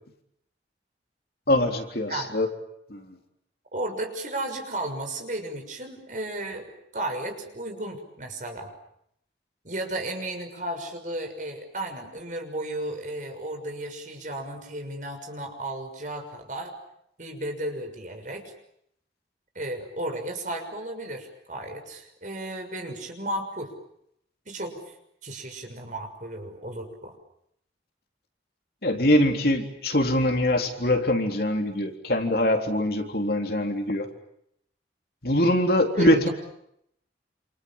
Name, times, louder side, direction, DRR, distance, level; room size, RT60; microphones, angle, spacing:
voice 1, 1.5-2.5 2.9-3.1 28.8-34.1 35.2-36.3, left 1 dB, 55° left, 4 dB, 3.7 m, -23 dB
voice 2, 3.7-8.7 9.6-16.8 17.2-18.5 19.5-23.7 24.5-24.9 25.2-27.1 36.0-36.3, right 1 dB, 45° right, 5 dB, 6.4 m, -34 dB
28.5 x 28.0 x 7.3 m, 0.74 s
head